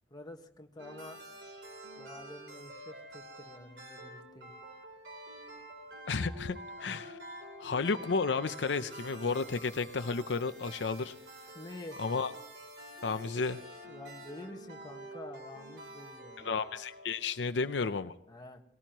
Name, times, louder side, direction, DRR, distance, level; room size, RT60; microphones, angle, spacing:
voice 1, 0.1-1.2 2.0-4.5 11.5-12.0 13.9-16.5 18.3-18.6, left 1 dB, 25° left, 2 dB, 1.5 m, -48 dB
sound 1, 0.8-17.4, right 1 dB, 75° right, 3.5 m, -48 dB
voice 2, 6.1-7.2 7.6-11.1 12.0-12.3 13.0-13.6 16.4-18.1, left 4 dB, 80° left, 10 dB, 0.6 m, -32 dB
20.0 x 18.0 x 3.0 m, 0.78 s
head